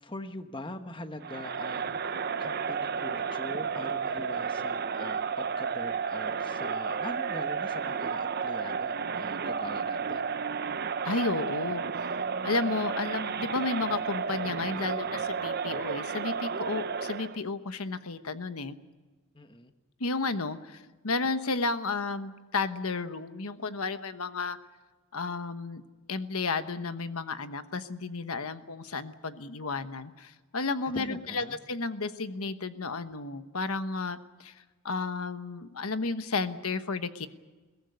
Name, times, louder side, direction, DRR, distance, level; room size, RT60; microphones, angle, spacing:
voice 1, 0.0-10.3 19.3-19.7 30.9-31.6, left 1 dB, 25° left, 8 dB, 1.2 m, -42 dB
Crowd, 1.2-17.4, right 6 dB, 45° right, 0.7 m, -32 dB
voice 2, 11.0-11.8 12.4-18.8 20.0-24.6 25.1-25.8 26.1-37.3, left 3 dB, 90° left, 10 dB, 1.2 m, -32 dB
22.5 x 17.0 x 9.6 m, 1.3 s
head